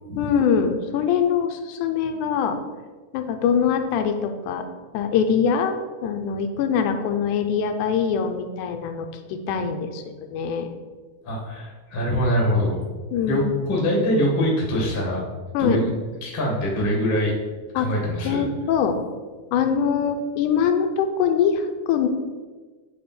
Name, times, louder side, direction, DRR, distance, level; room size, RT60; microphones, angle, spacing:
voice 1, 0.2-2.6 3.1-4.6 4.9-5.8 6.0-10.7 13.1-13.7 15.5-15.8 17.8-17.9 18.3-19.0 19.5-22.1, left 7 dB, 85° left, 6 dB, 2.0 m, -23 dB
voice 2, 11.2-12.8 13.3-15.2 15.6-15.9 16.2-17.3 17.7-18.5, equal, 35° left, -2 dB, 0.9 m, -23 dB
8.6 x 3.4 x 4.2 m, 1.3 s
omnidirectional pair, 3.5 m